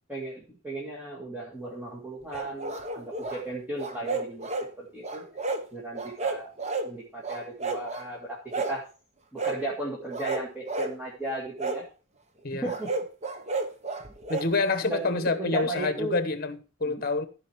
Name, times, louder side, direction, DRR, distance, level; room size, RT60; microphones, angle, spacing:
voice 1, 0.1-4.5 4.8-5.2 5.7-6.5 6.8-8.8 9.3-11.8 12.6-12.9 14.8-16.2 16.8-17.0, right 2 dB, 10° right, 2.1 m, -35 dB
sound 1, 2.3-3.4 3.8-4.7 5.0-5.6 5.9-6.9 7.2-8.1 8.5-8.8 9.4-9.6 10.1-10.9 11.6-11.8 12.6-14.5, right 3 dB, 35° right, 1.0 m, -32 dB
voice 2, 14.3-17.3, left 3 dB, 45° left, 1.1 m, -27 dB
14.5 x 5.2 x 4.6 m
head